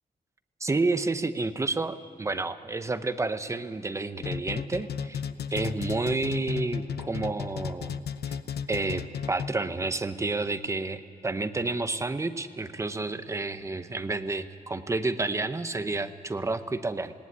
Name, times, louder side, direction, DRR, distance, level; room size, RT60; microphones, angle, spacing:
voice 1, 0.6-5.2 5.5-8.0 8.3-8.4 8.7-17.1, right 3 dB, 20° right, 10 dB, 0.7 m, -30 dB
sound 1, 4.2-9.7, left 7 dB, 80° left, 0.7 m, -34 dB
19.0 x 17.5 x 9.7 m, 2.8 s
wide cardioid pair, 170°, 16 cm